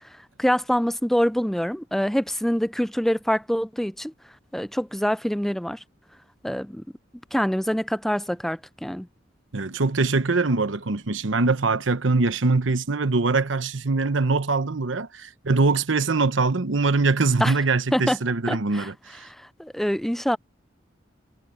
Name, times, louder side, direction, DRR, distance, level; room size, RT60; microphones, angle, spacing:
voice 1, 0.4-4.1 4.5-5.8 6.4-6.8 7.3-9.1 17.4-17.5 17.9-18.2 18.5-18.9 19.3-20.4, equal, ahead, 0.4 m, -25 dB
voice 2, 9.5-19.3, right 3 dB, 85° right, 1.0 m, -23 dB
head